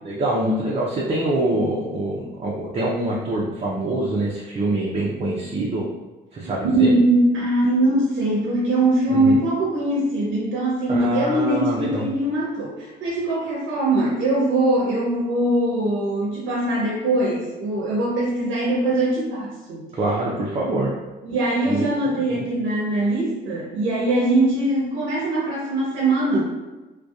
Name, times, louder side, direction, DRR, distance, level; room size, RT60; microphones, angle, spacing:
voice 1, 0.0-5.8 6.3-6.9 9.1-9.4 10.9-12.1 19.9-20.9 21.7-21.9 22.3-22.4, right 1 dB, 30° right, -4 dB, 0.4 m, -25 dB
voice 2, 6.4-19.8 21.2-26.4, right 1 dB, 80° right, -5 dB, 0.6 m, -21 dB
2.6 x 2.2 x 2.3 m, 1.1 s
cardioid pair, 90°, 20 cm